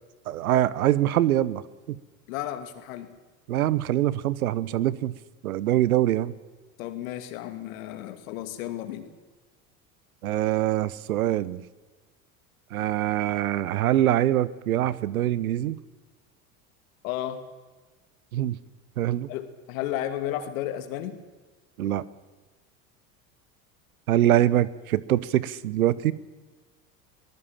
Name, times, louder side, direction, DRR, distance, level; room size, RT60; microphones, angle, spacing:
voice 1, 0.3-1.6 1.9-2.0 3.5-5.1 5.4-6.3 10.2-11.6 12.7-15.8 18.3-18.6 19.0-19.3 21.8-22.0 24.1-26.1, right 13 dB, 80° right, 19 dB, 1.0 m, -24 dB
voice 2, 2.3-3.1 6.8-9.1 17.0-17.4 19.3-21.2, left 12 dB, 70° left, 8 dB, 2.6 m, -33 dB
23.0 x 19.0 x 7.4 m, 1.3 s
hypercardioid pair, 80°, 43 cm